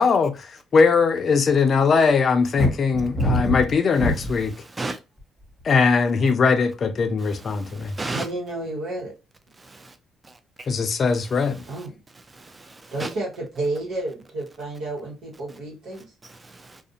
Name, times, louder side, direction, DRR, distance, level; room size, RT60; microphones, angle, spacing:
voice 1, 0.0-4.5 5.6-8.0 10.7-11.6, left 5 dB, 50° left, 0.4 m, -20 dB
sound 1, 2.6-4.5 5.2-5.6, equal, 5° right, 1.0 m, -23 dB
voice 2, 7.5-8.3 9.6-9.9 12.4-13.1 16.4-16.8, right 2 dB, 25° right, 0.4 m, -33 dB
voice 3, 8.1-9.1 11.7-11.9 12.9-16.1, right 2 dB, 80° right, 1.0 m, -31 dB
2.4 x 2.0 x 2.7 m
cardioid pair, 90°, 0 cm